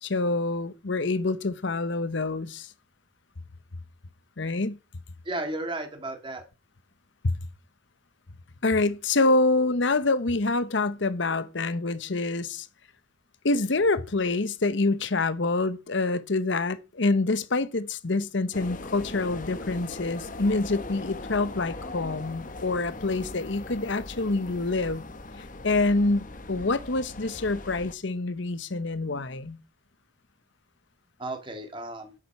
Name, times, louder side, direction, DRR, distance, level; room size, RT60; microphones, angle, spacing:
voice 1, 0.0-2.7 4.4-4.8 7.2-7.4 8.6-12.7 13.4-25.0 25.6-29.6, left 3 dB, 65° left, 0.9 m, -26 dB
voice 2, 5.2-6.5 31.2-32.2, right 2 dB, 25° right, 2.0 m, -34 dB
sound 1, 18.5-27.9, left 2 dB, 40° left, 1.0 m, -40 dB
10.0 x 7.3 x 5.9 m
head